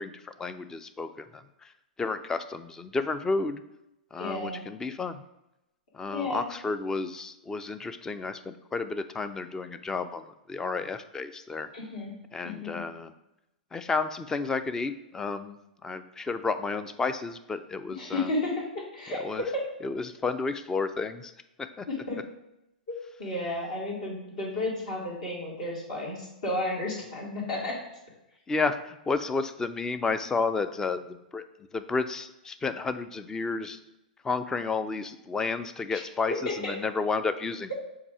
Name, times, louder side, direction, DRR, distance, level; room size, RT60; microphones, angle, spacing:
voice 1, 0.0-1.7 2.0-3.6 4.1-5.2 5.9-11.7 12.3-13.1 13.7-18.3 19.2-19.4 19.8-21.3 21.8-21.9 28.5-31.5 31.7-33.8 34.2-37.7, left 4 dB, 10° left, 11 dB, 0.4 m, -31 dB
voice 2, 4.2-4.6 6.1-6.4 11.7-12.1 12.4-12.8 17.9-19.6 21.9-22.2 22.9-27.8 35.9-36.0 36.5-36.7, left 2 dB, 55° left, -3 dB, 2.2 m, -32 dB
7.2 x 2.8 x 4.7 m, 0.89 s
figure-of-eight pair, 105°, 5 cm